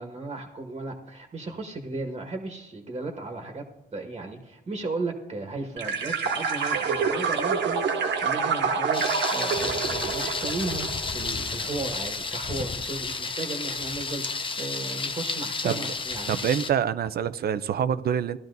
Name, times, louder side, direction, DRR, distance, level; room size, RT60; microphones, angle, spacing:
voice 1, 0.0-3.6 3.9-16.3, right 3 dB, 30° right, 3 dB, 1.4 m, -35 dB
sound 1, 5.8-11.5, right 5 dB, 65° right, 1.3 m, -27 dB
Thunder, 8.9-16.7, left 4 dB, 25° left, 0.7 m, -31 dB
voice 2, 16.3-18.4, right 8 dB, 50° right, 13 dB, 0.5 m, -26 dB
16.5 x 12.0 x 2.6 m, 0.95 s
cardioid pair, 90°, 20 cm